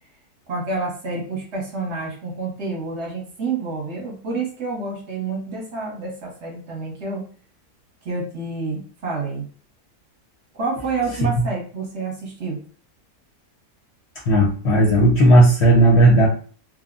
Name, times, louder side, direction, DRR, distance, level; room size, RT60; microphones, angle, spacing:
voice 1, 0.5-7.2 8.0-9.4 10.5-12.6, right 3 dB, 50° right, -2 dB, 1.0 m, -28 dB
voice 2, 14.3-16.3, right 1 dB, 60° left, -3 dB, 0.7 m, -14 dB
3.1 x 2.0 x 2.4 m, 0.42 s
omnidirectional pair, 1.7 m